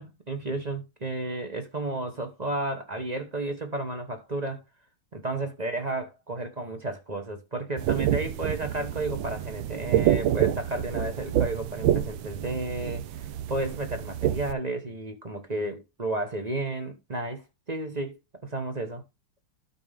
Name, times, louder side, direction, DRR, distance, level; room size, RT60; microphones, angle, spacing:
voice 1, 0.0-4.6 5.1-13.0 13.5-19.0, right 2 dB, 35° right, 0.7 m, -32 dB
sound 1, 7.8-14.5, right 11 dB, 75° right, 1.3 m, -28 dB
12.5 x 4.9 x 3.4 m
omnidirectional pair, 2.3 m